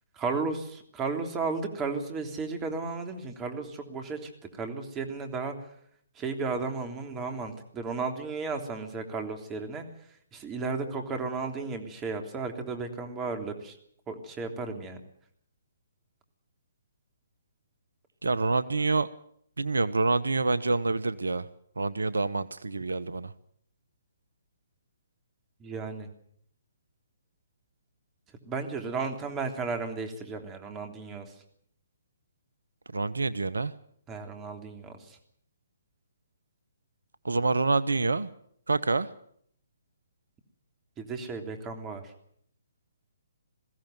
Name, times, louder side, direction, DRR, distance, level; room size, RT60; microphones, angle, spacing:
voice 1, 0.1-5.5 6.1-9.8 10.3-13.7 14.1-15.0 25.6-26.1 28.4-31.3 34.1-35.2 41.0-42.1, right 4 dB, 20° right, 5 dB, 3.2 m, -34 dB
voice 2, 18.2-19.1 19.6-21.5 21.8-23.3 32.9-33.7 37.2-38.3 38.7-39.1, right 3 dB, 75° right, 17 dB, 0.9 m, -27 dB
21.5 x 16.0 x 9.2 m, 0.68 s
figure-of-eight pair, 135°, 0 cm